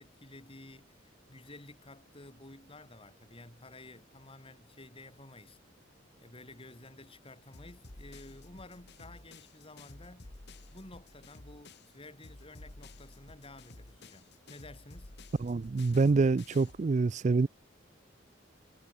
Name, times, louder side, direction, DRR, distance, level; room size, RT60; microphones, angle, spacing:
voice 1, 0.0-5.6 6.2-10.3 10.7-15.1, left 2 dB, 30° left, 4.2 m, -52 dB
sound 1, 7.5-11.9 12.2-16.9, left 2 dB, 60° left, 1.9 m, -52 dB
voice 2, 15.4-17.5, right 4 dB, 40° right, 0.4 m, -26 dB
head